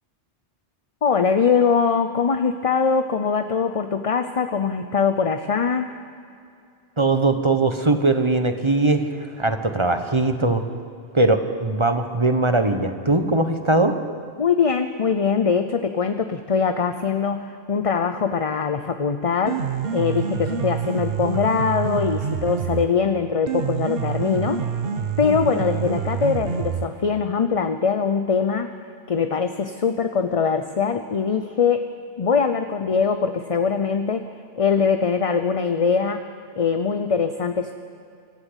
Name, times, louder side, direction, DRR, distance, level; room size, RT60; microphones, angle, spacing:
voice 1, 1.0-5.9 14.4-24.7 25.2-28.7 29.1-31.9 32.2-34.3 34.6-36.3 36.6-37.7, left 6 dB, 35° left, 8 dB, 0.7 m, -22 dB
voice 2, 7.0-10.6 11.1-13.9, right 2 dB, 25° right, 8 dB, 1.2 m, -20 dB
Piano, 19.3-27.3, right 6 dB, 60° right, 1.2 m, -27 dB
25.5 x 14.0 x 8.2 m, 2.5 s
omnidirectional pair, 1.1 m